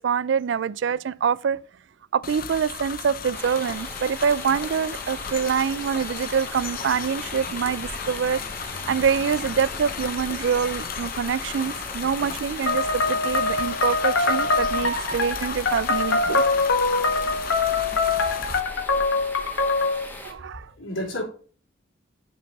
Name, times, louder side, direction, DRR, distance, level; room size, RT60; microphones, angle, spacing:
voice 1, 0.0-1.6 2.1-8.4 8.9-16.4 20.2-20.7, right 7 dB, 60° right, 0.3 m, -25 dB
sound 1, 2.2-18.6, left 6 dB, 45° left, 0.7 m, -35 dB
sound 2, 3.3-20.3, left 1 dB, 10° left, 1.2 m, -40 dB
sound 3, 12.7-20.0, left 3 dB, 70° left, 1.4 m, -23 dB
voice 2, 20.1-20.4 20.8-21.2, left 1 dB, 85° left, 4.1 m, -33 dB
7.4 x 4.6 x 5.3 m
head